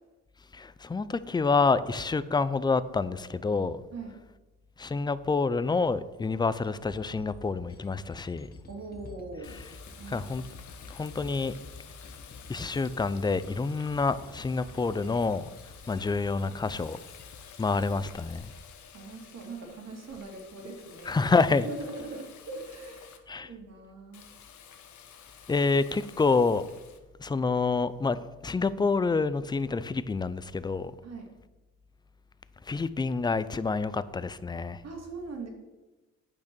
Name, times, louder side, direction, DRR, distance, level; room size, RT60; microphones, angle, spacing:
voice 1, 0.5-3.8 4.8-8.5 10.1-10.4 10.9-11.5 12.5-15.4 15.9-17.0 17.6-18.5 21.1-21.7 23.3-23.5 25.5-26.7 27.2-30.9 32.7-34.8, left 4 dB, 15° left, 0.4 m, -27 dB
sound 1, 6.6-18.5, left 3 dB, 30° left, 1.3 m, -50 dB
voice 2, 8.7-9.6 9.9-10.3 18.9-21.2 21.6-23.2 23.4-24.3 31.0-31.3 34.8-35.5, right 3 dB, 60° right, 2.4 m, -41 dB
Water tap faucet, 9.4-23.2 24.1-27.0, left 8 dB, 70° left, 1.1 m, -51 dB
9.0 x 5.9 x 6.0 m
cardioid pair, 90°, 30 cm